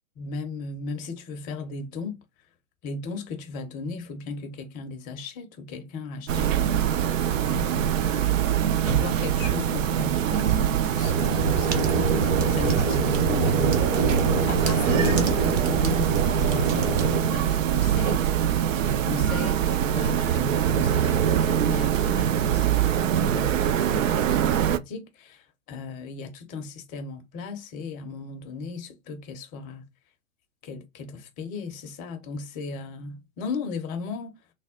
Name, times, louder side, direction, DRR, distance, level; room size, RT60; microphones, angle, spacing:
voice 1, 0.2-2.2 2.8-6.9 7.4-13.8 14.2-18.2 18.8-29.9 30.6-34.3, left 4 dB, 20° left, 0.5 m, -36 dB
sound 1, 6.3-24.8, right 9 dB, 70° right, 0.5 m, -24 dB
sound 2, 11.0-17.2, right 4 dB, 30° right, 0.8 m, -25 dB
3.3 x 2.1 x 3.6 m
hypercardioid pair, 115°, 41 cm